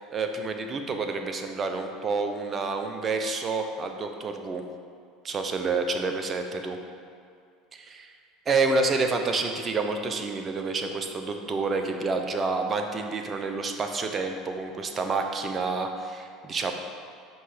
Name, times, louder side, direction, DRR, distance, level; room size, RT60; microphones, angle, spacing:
voice 1, 0.0-4.6 5.2-6.8 7.7-8.1 8.5-16.7, right 3 dB, 35° right, 5 dB, 0.9 m, -28 dB
7.9 x 5.6 x 5.1 m, 2.3 s
hypercardioid pair, 85°, 0 cm